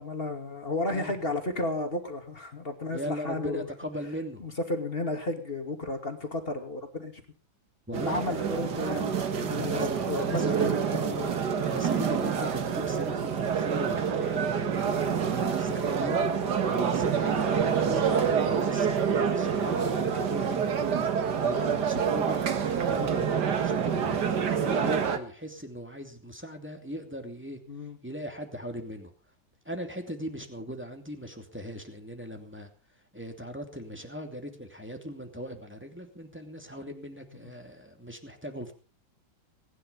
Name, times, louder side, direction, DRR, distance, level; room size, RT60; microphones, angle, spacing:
voice 1, 0.0-3.7 4.4-7.2 8.1-11.4 21.6-21.8 27.7-28.0 37.4-37.5, left 2 dB, 30° left, 5 dB, 2.6 m, -33 dB
voice 2, 2.9-4.5 7.9-8.4 9.6-10.6 11.6-16.2 16.7-21.0 21.4-22.4 22.9-27.6 28.0-29.1 29.6-32.7 33.1-38.7, equal, 5° right, 4 dB, 2.6 m, -39 dB
sound 1, 7.9-25.2, right 7 dB, 60° right, 2.1 m, -27 dB
20.0 x 11.0 x 5.5 m, 0.38 s
omnidirectional pair, 2.1 m